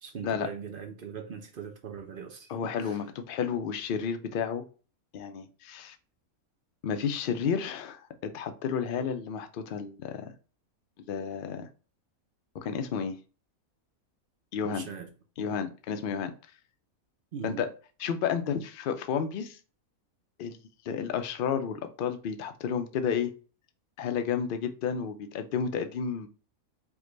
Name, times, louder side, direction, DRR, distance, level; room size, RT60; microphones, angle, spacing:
voice 1, 0.0-3.0 14.6-15.1 17.3-17.7, right 6 dB, 55° right, 0.6 m, -40 dB
voice 2, 2.5-4.6 5.1-6.0 6.8-10.3 11.1-11.7 12.6-13.2 14.5-14.9 15.4-16.3 17.4-17.7 18.0-19.6 20.4-20.6 20.8-23.3 24.0-26.3, left 7 dB, 65° left, 0.5 m, -31 dB
4.8 x 2.2 x 3.8 m
omnidirectional pair, 1.5 m